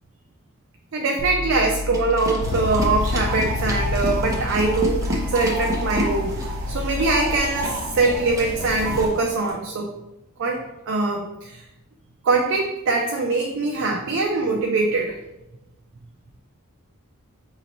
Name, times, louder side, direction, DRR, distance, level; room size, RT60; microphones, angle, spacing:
voice 1, 0.9-9.9 10.4-11.6 12.2-15.2, right 3 dB, 60° right, 2 dB, 0.4 m, -23 dB
sound 1, 1.2-7.4, left 3 dB, 50° left, 0.4 m, -31 dB
sound 2, 1.9-9.5, equal, 15° right, 0.6 m, -32 dB
sound 3, 2.4-9.1, equal, 80° right, 1.0 m, -29 dB
5.1 x 2.7 x 2.9 m, 0.95 s
head